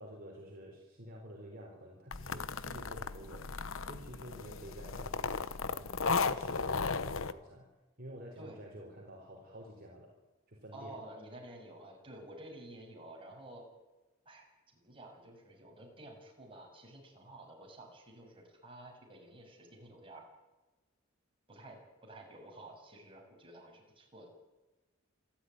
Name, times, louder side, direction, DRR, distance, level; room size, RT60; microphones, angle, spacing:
voice 1, 0.0-3.5 3.8-5.4 5.7-7.7 8.0-10.1 10.5-11.0, equal, 45° right, 0 dB, 4.0 m, -50 dB
sound 1, 2.1-7.3, left 4 dB, 75° left, 1.0 m, -35 dB
voice 2, 10.7-13.7 14.2-14.5 14.7-20.2 21.5-24.3, right 1 dB, 25° right, 0 dB, 6.7 m, -51 dB
27.5 x 12.5 x 9.6 m, 1.1 s
head